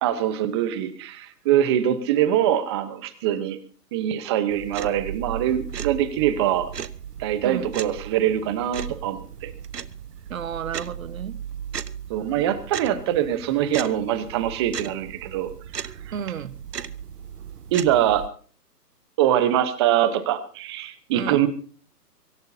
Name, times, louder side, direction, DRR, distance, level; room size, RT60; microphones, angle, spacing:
voice 1, 0.0-3.6 3.9-6.7 7.2-9.5 12.1-15.5 15.8-15.9 17.7-18.3 19.2-21.5, right 11 dB, 15° right, 13 dB, 0.9 m, -23 dB
sound 1, 4.5-18.3, right 8 dB, 70° right, 1.2 m, -37 dB
voice 2, 10.3-11.4 16.1-16.6 21.1-21.5, right 8 dB, 55° right, 15 dB, 1.3 m, -32 dB
24.5 x 14.0 x 2.8 m, 0.41 s
hypercardioid pair, 145°, 49 cm